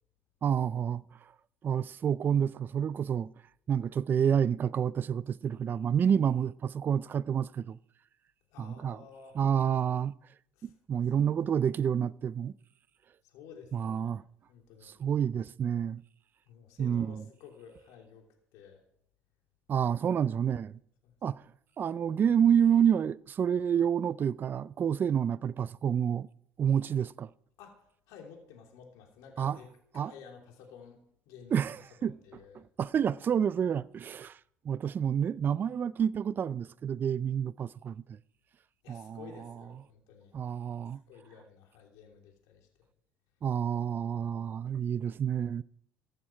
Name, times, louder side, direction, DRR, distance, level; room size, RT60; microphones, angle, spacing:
voice 1, 0.4-1.0 1.6-3.3 3.7-7.8 8.6-9.0 9.3-10.1 10.6-12.5 13.7-14.2 14.8-16.0 16.8-17.2 19.7-20.8 21.2-21.4 21.8-26.3 26.6-27.3 29.4-29.6 29.9-30.1 31.5-32.2 32.5-34.4 34.6-38.0 38.9-39.5 40.3-41.0 43.4-45.6, right 8 dB, 35° right, 0.4 m, -29 dB
voice 2, 8.5-9.4 10.6-10.7 11.2-11.3 13.2-14.1 14.5-15.0 16.5-18.8 21.0-21.1 27.6-27.8 28.1-29.7 29.9-31.6 32.0-32.6 38.8-40.3 41.1-42.7, left 6 dB, 75° left, 3.0 m, -52 dB
15.0 x 9.0 x 4.6 m
supercardioid pair, 95°, 6 cm